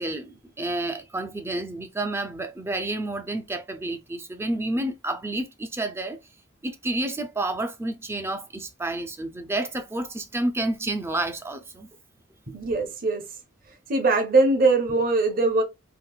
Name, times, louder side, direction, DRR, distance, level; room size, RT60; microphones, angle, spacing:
voice 1, 0.0-6.2 6.6-11.9, right 2 dB, 10° right, 0.4 m, -30 dB
voice 2, 12.5-13.2 13.9-15.6, right 3 dB, 45° right, 0.8 m, -21 dB
3.7 x 2.5 x 2.3 m
head